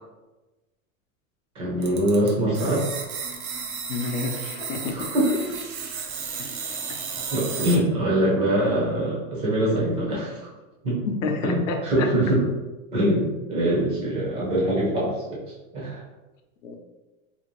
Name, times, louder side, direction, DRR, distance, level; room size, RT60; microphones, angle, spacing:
voice 1, 1.5-2.8 4.9-5.5 7.3-10.4 10.8-11.0 11.4-12.4 12.9-15.4 15.7-16.0, right 1 dB, 15° right, -5 dB, 0.5 m, -23 dB
sound 1, 1.8-7.8, right 6 dB, 85° right, 0.8 m, -33 dB
voice 2, 3.9-5.1 11.1-12.1 16.6-16.7, left 4 dB, 65° left, 3 dB, 0.7 m, -29 dB
2.8 x 2.7 x 3.0 m, 1.1 s
supercardioid pair, 165°, 42 cm